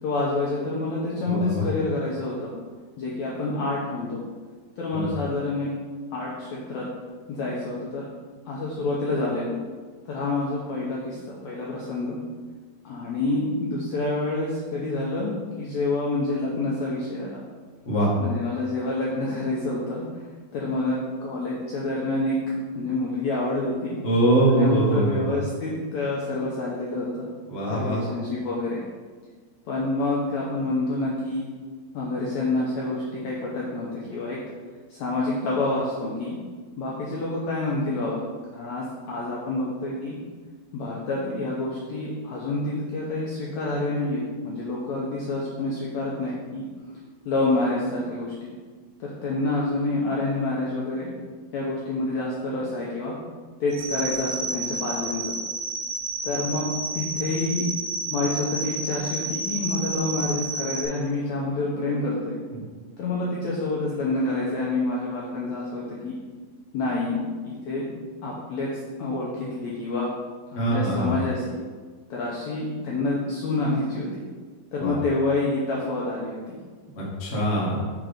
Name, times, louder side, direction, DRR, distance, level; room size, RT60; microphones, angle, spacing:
voice 1, 0.0-2.5 3.0-4.2 4.8-5.7 6.1-6.9 7.3-8.1 8.5-9.6 10.0-12.2 12.8-17.4 18.2-20.0 20.5-22.4 22.7-24.0 24.5-27.3 27.7-28.8 29.7-31.5 31.9-34.4 34.9-36.4 36.8-38.2 38.5-40.2 40.7-46.6 47.2-48.5 49.0-51.1 51.5-53.2 53.6-55.4 56.2-56.7 56.9-57.6 58.1-62.4 63.0-66.1 66.7-67.2 67.4-67.9 68.2-68.7 69.0-70.1 70.5-71.6 72.1-74.2 74.7-76.6, left 2 dB, 80° left, -4 dB, 1.6 m, -28 dB
voice 2, 1.2-1.7 4.9-5.1 17.8-18.1 24.0-25.3 27.5-28.0 62.5-62.6 70.5-71.2 74.8-74.9 76.9-77.8, right 1 dB, 50° left, -6 dB, 0.7 m, -23 dB
sound 1, 53.7-60.9, right 3 dB, 55° right, 3.3 m, -31 dB
6.4 x 3.9 x 4.9 m, 1.5 s
omnidirectional pair, 4.2 m